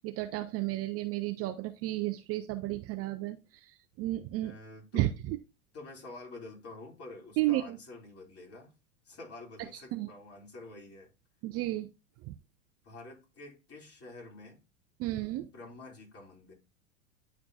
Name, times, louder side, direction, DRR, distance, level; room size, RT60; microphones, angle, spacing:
voice 1, 0.0-4.5 4.9-5.4 7.4-7.8 9.7-10.1 11.4-11.9 12.2-12.3 15.0-15.5, right 16 dB, 35° right, 0.5 m, -33 dB
voice 2, 4.4-5.1 5.7-8.7 9.0-11.1 12.8-14.6 15.4-16.5, left 2 dB, 30° left, 3.7 m, -48 dB
9.9 x 4.3 x 2.7 m
hypercardioid pair, 100°, 43 cm